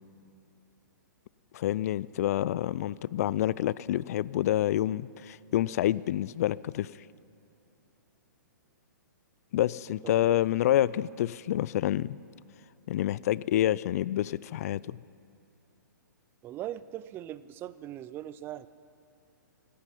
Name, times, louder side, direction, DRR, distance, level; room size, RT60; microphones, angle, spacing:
voice 1, 1.5-6.9 9.5-12.2 12.9-15.0, left 12 dB, 50° left, 21 dB, 0.3 m, -28 dB
voice 2, 16.4-18.7, right 12 dB, 20° right, 16 dB, 0.4 m, -40 dB
15.5 x 10.0 x 9.1 m, 2.8 s
hypercardioid pair, 135°, 10 cm